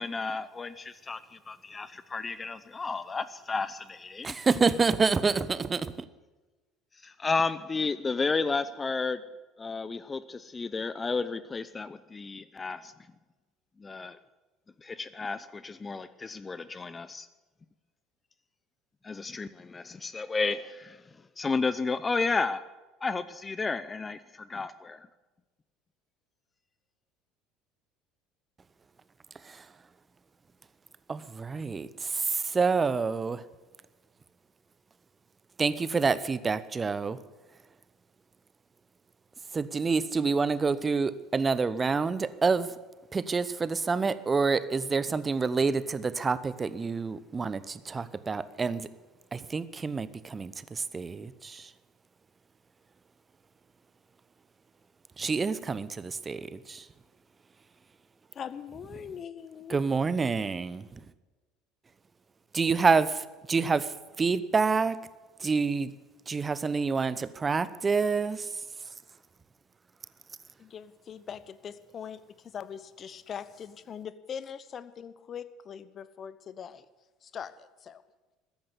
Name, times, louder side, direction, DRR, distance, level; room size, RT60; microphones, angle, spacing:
voice 1, 0.0-4.3 6.9-9.2 9.6-12.9 13.8-14.2 14.8-17.3 19.0-22.6 23.0-25.1, left 4 dB, 25° left, 15 dB, 0.6 m, -32 dB
voice 2, 4.2-6.1 29.4-29.7 31.1-33.4 35.6-37.2 39.5-42.7 43.1-48.9 49.3-51.7 55.2-56.9 59.7-61.1 62.5-65.0 65.4-65.9 66.3-68.6, right 4 dB, 25° right, 16 dB, 0.8 m, -28 dB
voice 3, 58.3-59.8 70.6-76.9 77.2-78.0, left 8 dB, 40° left, 15 dB, 1.0 m, -42 dB
14.0 x 10.5 x 8.2 m, 1.2 s
hypercardioid pair, 65°, 0 cm